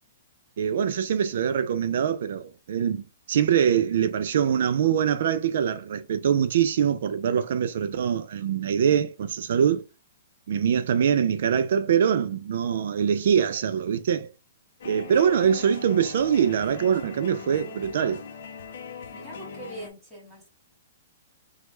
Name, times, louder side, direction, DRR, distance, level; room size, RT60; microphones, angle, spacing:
voice 1, 0.6-9.8 10.5-14.3 14.8-18.2, right 8 dB, 60° right, 0.3 m, -23 dB
sound 1, 14.8-19.9, left 5 dB, 60° left, 0.5 m, -41 dB
voice 2, 19.1-20.5, right 1 dB, 5° right, 1.9 m, -42 dB
3.1 x 2.1 x 3.0 m
hypercardioid pair, 165°, 0 cm